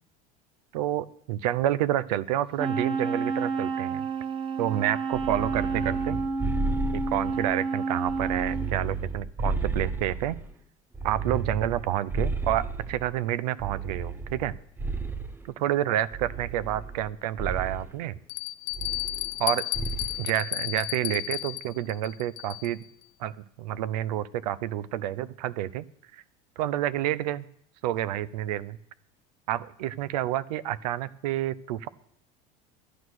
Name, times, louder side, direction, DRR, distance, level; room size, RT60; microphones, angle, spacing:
voice 1, 0.7-4.0 4.6-6.2 6.9-10.4 11.0-14.6 15.6-18.2 19.4-19.7 20.2-22.8 23.2-25.9 26.6-27.5 27.8-28.8 29.5-31.9, right 13 dB, 85° right, 17 dB, 0.6 m, -29 dB
Wind instrument woodwind instrument, 2.6-8.7, right 4 dB, 25° right, 1.0 m, -30 dB
sound 1, 5.1-7.6 8.0-10.5 10.9-13.1 13.6-15.5 16.1-17.1 17.4-17.9 18.7-19.5 19.7-20.2, right 4 dB, 10° right, 0.6 m, -33 dB
Bell, 16.7-16.8 17.4-17.5 18.3-22.9, left 16 dB, 70° left, 0.7 m, -33 dB
11.0 x 9.6 x 6.2 m, 0.67 s
supercardioid pair, 120°, 20 cm